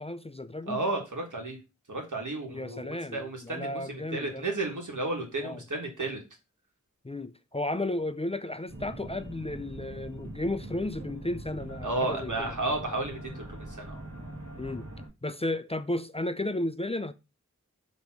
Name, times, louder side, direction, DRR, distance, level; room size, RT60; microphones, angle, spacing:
voice 1, 0.0-0.8 2.5-4.5 5.4-5.6 7.0-12.5 14.6-14.9 15.2-17.1, left 1 dB, 20° left, 0.5 m, -33 dB
voice 2, 0.7-1.6 1.9-6.2 11.8-14.0, right 2 dB, 85° right, 1.8 m, -33 dB
sound 1, 8.7-15.1, right 1 dB, 55° right, 2.3 m, -42 dB
7.0 x 3.1 x 6.0 m
wide cardioid pair, 50°, 30 cm